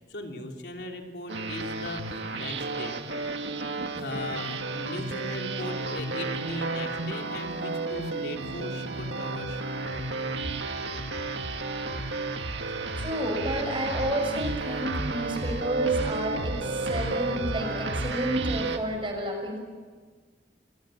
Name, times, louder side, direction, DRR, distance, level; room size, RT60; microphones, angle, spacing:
voice 1, 0.0-2.9 3.9-9.6, left 2 dB, 75° left, 2 dB, 3.3 m, -38 dB
sound 1, 1.3-18.8, right 3 dB, 90° right, 2.0 m, -32 dB
voice 2, 12.9-19.6, right 1 dB, 30° right, 2 dB, 6.3 m, -30 dB
30.0 x 21.0 x 7.8 m, 1.5 s
head